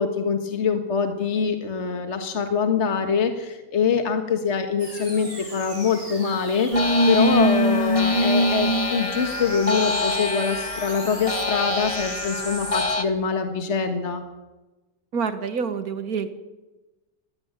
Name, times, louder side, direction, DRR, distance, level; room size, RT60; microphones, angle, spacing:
voice 1, 0.0-14.2, left 5 dB, 50° left, 6 dB, 1.8 m, -24 dB
sound 1, 4.8-12.8, right 1 dB, 35° right, 5.2 m, -38 dB
sound 2, 6.7-13.0, left 1 dB, 25° left, 1.3 m, -23 dB
voice 2, 15.1-16.3, right 6 dB, 85° right, 10 dB, 1.9 m, -27 dB
19.5 x 16.0 x 8.9 m, 1.1 s
omnidirectional pair, 1.5 m